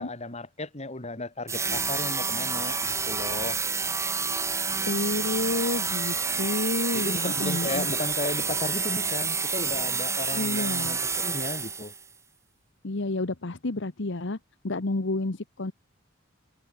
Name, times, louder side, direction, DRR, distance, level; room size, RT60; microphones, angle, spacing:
voice 1, 0.0-3.6 6.9-11.9, left 2 dB, 35° left, 3.9 m, -34 dB
sound 1, 1.5-12.0, right 5 dB, 15° right, 0.9 m, -29 dB
voice 2, 4.8-7.9 10.3-11.0 12.8-14.4 14.6-15.7, left 2 dB, 65° left, 1.2 m, -30 dB
head